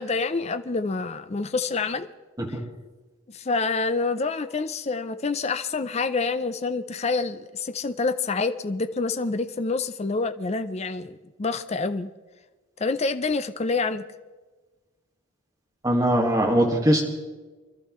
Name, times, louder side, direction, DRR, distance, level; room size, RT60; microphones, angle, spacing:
voice 1, 0.0-2.1 2.5-2.6 3.3-12.1 12.8-14.1, left 4 dB, 30° left, 9 dB, 0.5 m, -27 dB
voice 2, 15.8-17.0, right 1 dB, 15° right, 0 dB, 1.7 m, -21 dB
25.0 x 12.5 x 3.1 m, 1.3 s
head